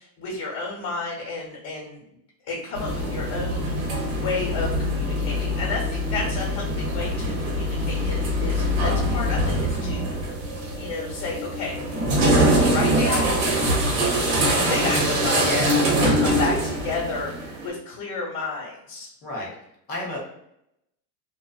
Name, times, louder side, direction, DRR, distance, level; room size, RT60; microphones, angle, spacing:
voice 1, 0.0-2.0 2.4-10.4 10.7-11.8 12.6-13.4 14.0-19.1, left 3 dB, 45° left, -4 dB, 1.1 m, -32 dB
sound 1, 2.7-17.7, equal, 50° right, 0.9 m, -23 dB
voice 2, 15.3-15.8 19.2-19.5 19.9-20.2, left 1 dB, 20° left, -4 dB, 0.4 m, -30 dB
2.3 x 2.2 x 2.4 m, 0.78 s
supercardioid pair, 145°, 49 cm